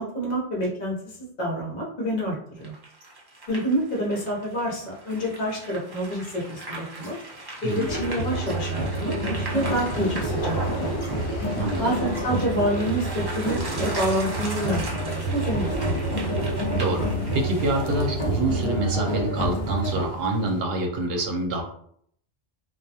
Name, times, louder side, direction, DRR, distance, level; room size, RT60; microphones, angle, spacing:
voice 1, 0.0-2.7 3.5-7.2 7.6-11.2 11.8-16.3, right 1 dB, 50° left, -3 dB, 0.9 m, -28 dB
sound 1, 2.6-18.1, right 1 dB, 30° right, 0.4 m, -37 dB
sound 2, 7.9-20.0, right 1 dB, 30° left, 1.1 m, -28 dB
sound 3, 9.5-20.6, left 1 dB, 80° left, 0.9 m, -43 dB
voice 2, 11.5-11.9 16.8-21.6, right 2 dB, 70° right, 2 dB, 0.8 m, -26 dB
2.2 x 2.2 x 2.7 m, 0.65 s
omnidirectional pair, 1.1 m